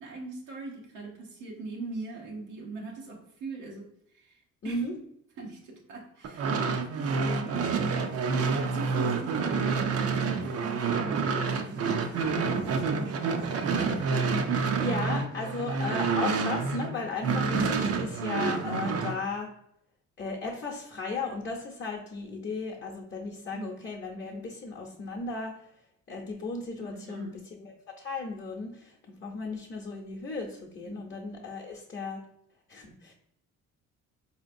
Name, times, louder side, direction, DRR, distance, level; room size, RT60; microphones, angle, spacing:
voice 1, 0.0-4.8 5.4-8.0 8.3-13.3 13.7-14.7 23.5-23.7 26.8-27.3 30.8-31.1, right 3 dB, 90° right, -2 dB, 0.9 m, -41 dB
voice 2, 4.6-4.9 14.5-19.5 20.2-25.6 26.1-27.3 27.6-32.2 32.7-33.1, left 3 dB, 35° left, -2 dB, 0.7 m, -35 dB
sound 1, 6.2-16.9 17.2-19.2, right 4 dB, 55° right, 0.5 m, -28 dB
4.3 x 2.8 x 2.5 m, 0.75 s
cardioid pair, 90°, 30 cm